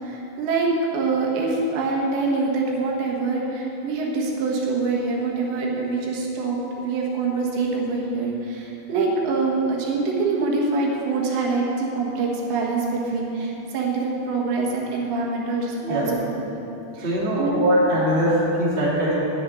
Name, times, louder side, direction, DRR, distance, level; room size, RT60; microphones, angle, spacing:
voice 1, 0.0-16.6 16.9-17.7, right 3 dB, 85° right, -2 dB, 3.8 m, -25 dB
voice 2, 15.8-16.2 17.0-19.1, equal, 15° right, -9 dB, 2.5 m, -21 dB
9.8 x 7.2 x 9.2 m, 3.0 s
omnidirectional pair, 4.9 m